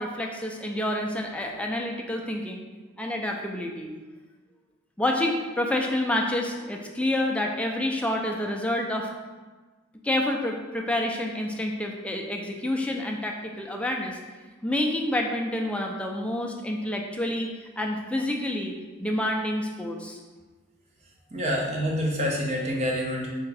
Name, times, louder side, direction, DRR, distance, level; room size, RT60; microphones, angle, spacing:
voice 1, 0.0-2.6 3.0-3.9 5.0-9.1 10.0-14.2 14.6-17.5 17.8-18.7 19.0-20.2, left 1 dB, 5° left, 1 dB, 0.3 m, -28 dB
voice 2, 21.3-23.3, equal, 35° right, -1 dB, 0.7 m, -27 dB
3.5 x 3.4 x 3.3 m, 1.3 s
head